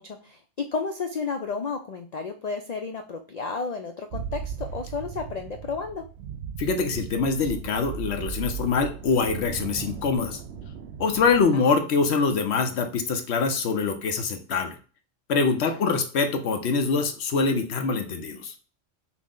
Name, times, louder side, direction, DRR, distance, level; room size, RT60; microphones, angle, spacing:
voice 1, 0.0-6.0 11.5-11.6 15.7-15.8, left 4 dB, 80° left, 5 dB, 0.3 m, -32 dB
sound 1, 4.1-11.4, right 7 dB, 70° right, 0.8 m, -37 dB
voice 2, 6.6-10.4 11.0-14.7 15.3-18.5, left 4 dB, 65° left, 6 dB, 0.9 m, -24 dB
6.0 x 2.1 x 3.7 m, 0.37 s
omnidirectional pair, 1.3 m